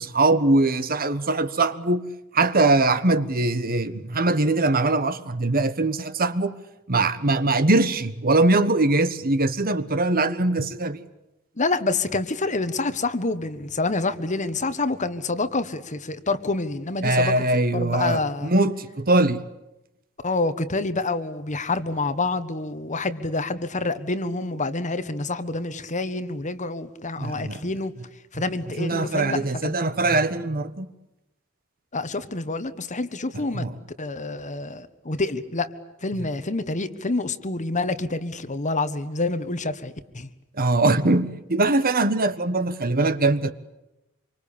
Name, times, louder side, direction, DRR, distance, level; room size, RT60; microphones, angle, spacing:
voice 1, 0.0-2.1 2.3-6.6 6.9-11.0 17.0-19.4 27.2-27.6 28.8-30.9 33.5-33.7 40.6-43.5, right 2 dB, 40° right, 1.3 m, -22 dB
voice 2, 11.6-17.5 17.7-18.5 20.2-27.9 28.3-29.8 31.9-33.7 34.0-35.7 36.0-40.3, left 3 dB, 35° left, 1.4 m, -27 dB
27.0 x 24.5 x 8.8 m
head